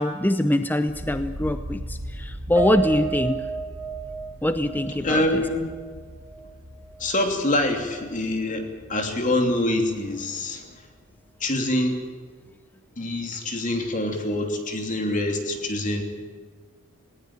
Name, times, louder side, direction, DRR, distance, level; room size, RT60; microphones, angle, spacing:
voice 1, 0.0-3.4 4.4-5.4, left 1 dB, 10° left, 9 dB, 0.7 m, -23 dB
sound 1, 0.9-10.9 11.2-11.9, equal, 55° right, 2.0 m, -40 dB
Piano, 2.6-7.0 7.4-7.6 8.0-8.1, right 5 dB, 15° right, 1.7 m, -32 dB
voice 2, 5.0-5.6 7.0-10.8 11.4-12.0 13.0-16.0, left 1 dB, 35° left, 4 dB, 3.0 m, -25 dB
20.0 x 18.5 x 8.9 m, 1.5 s
head